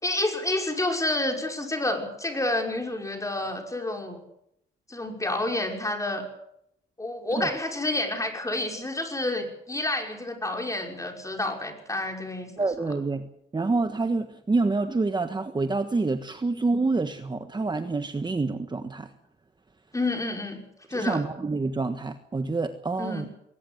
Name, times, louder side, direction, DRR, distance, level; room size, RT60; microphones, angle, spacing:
voice 1, 0.0-4.2 4.9-6.2 7.0-12.7 19.9-20.6 20.9-21.2 23.0-23.3, left 2 dB, 15° left, 3 dB, 5.7 m, -29 dB
voice 2, 12.6-13.3 13.5-19.1 20.9-23.3, right 3 dB, 20° right, 8 dB, 1.4 m, -27 dB
20.5 x 19.0 x 8.0 m, 0.76 s
cardioid pair, 90°, 20 cm